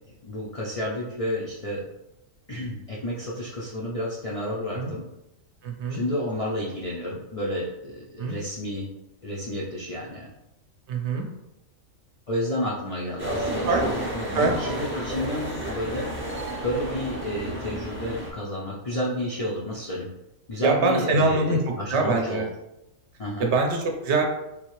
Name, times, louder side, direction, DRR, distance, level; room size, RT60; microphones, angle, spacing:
voice 1, 0.1-1.8 2.5-5.1 5.9-8.9 9.2-10.3 12.3-16.1 16.6-20.1 20.5-22.5 23.2-23.5, left 1 dB, 65° left, -4 dB, 0.3 m, -31 dB
voice 2, 5.6-6.0 8.2-8.4 10.9-11.3 13.7-13.8 14.3-14.5 20.6-22.5 23.4-24.2, right 3 dB, 65° right, 2 dB, 0.8 m, -23 dB
sound 1, 13.2-18.3, right 1 dB, 15° right, 0.5 m, -31 dB
3.6 x 2.7 x 3.0 m, 0.89 s
omnidirectional pair, 1.4 m